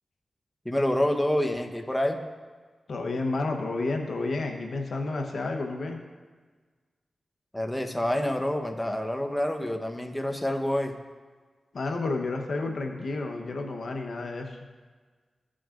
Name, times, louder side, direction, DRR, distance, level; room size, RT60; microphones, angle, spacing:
voice 1, 0.6-2.2 7.5-11.0, left 1 dB, 10° left, 4 dB, 1.0 m, -27 dB
voice 2, 2.9-6.0 11.7-14.6, left 3 dB, 75° left, 3 dB, 0.9 m, -31 dB
15.5 x 6.2 x 2.5 m, 1.4 s
cardioid pair, 50°, 0 cm